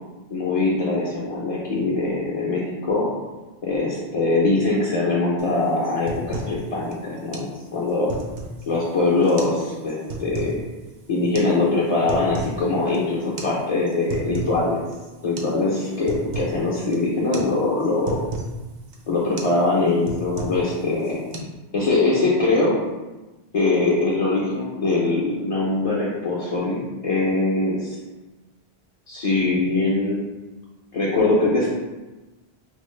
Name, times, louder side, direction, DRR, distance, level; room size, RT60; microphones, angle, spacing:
voice 1, 0.3-3.1 3.6-7.5 7.7-8.1 8.7-10.6 11.1-14.8 15.2-18.2 19.1-21.2 21.7-22.7 23.5-28.0 29.1-30.2 30.9-31.7, left 3 dB, 45° left, -6 dB, 0.5 m, -22 dB
sound 1, 5.4-5.5 5.8-6.6 6.9-7.0 7.3-7.5 7.9-8.7 9.2-9.6 9.9-10.6 11.3-11.5 11.9-12.6 12.9-13.0 13.4-13.5 13.9-14.6 14.9-15.0 15.4-15.6 15.8-16.6 16.9-17.1 17.3-17.5 17.8-18.5 18.9-19.1 19.4-19.6 19.9-20.7 21.0-21.4, right 2 dB, 55° right, 0.6 m, -32 dB
4.4 x 2.0 x 3.1 m, 1.1 s
omnidirectional pair, 1.0 m